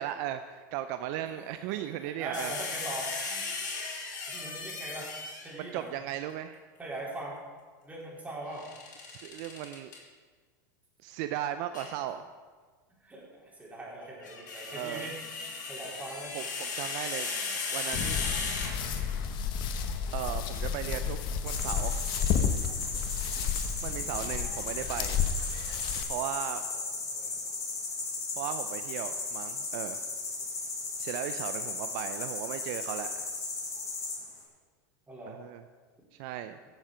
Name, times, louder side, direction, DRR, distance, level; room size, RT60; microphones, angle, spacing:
voice 1, 0.0-2.5 5.6-6.6 9.1-9.9 11.0-12.2 14.7-15.1 16.3-17.3 17.7-18.2 20.1-21.2 21.4-22.0 23.8-25.2 26.0-26.6 28.4-30.0 31.0-33.3 35.3-35.6 36.2-36.6, right 12 dB, 60° right, 10 dB, 0.5 m, -36 dB
voice 2, 1.3-3.4 4.3-5.1 5.4-5.9 6.8-7.4 7.8-8.6 12.0-12.1 13.0-15.2 15.7-16.3 24.8-24.9 26.7-27.4 35.1-35.4, right 2 dB, 15° right, -4 dB, 4.1 m, -41 dB
sound 1, 2.3-5.6 8.5-10.0 11.7-11.9 14.0-19.2, left 4 dB, 80° left, 3.1 m, -36 dB
sound 2, 17.9-26.0, left 7 dB, 50° left, 1.1 m, -32 dB
sound 3, 21.5-34.4, left 3 dB, 30° left, 3.6 m, -36 dB
16.0 x 7.2 x 5.1 m, 1.5 s
hypercardioid pair, 100°, 10 cm